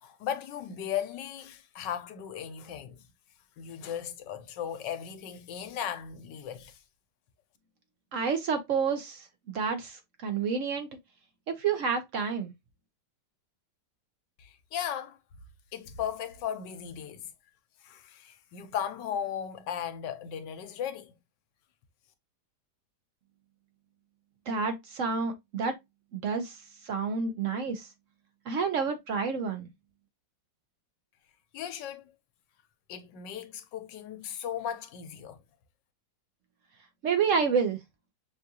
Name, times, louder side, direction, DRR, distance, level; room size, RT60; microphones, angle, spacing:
voice 1, 0.0-3.0 3.6-6.8 14.4-15.2 15.7-17.3 17.8-21.1 31.5-32.0 32.9-35.4, left 9 dB, 85° left, 1.3 m, -36 dB
voice 2, 8.1-10.9 11.5-12.5 24.5-25.8 26.1-27.9 28.5-29.7 37.0-37.8, right 5 dB, 60° right, 0.8 m, -29 dB
6.1 x 2.4 x 2.7 m
omnidirectional pair, 1.9 m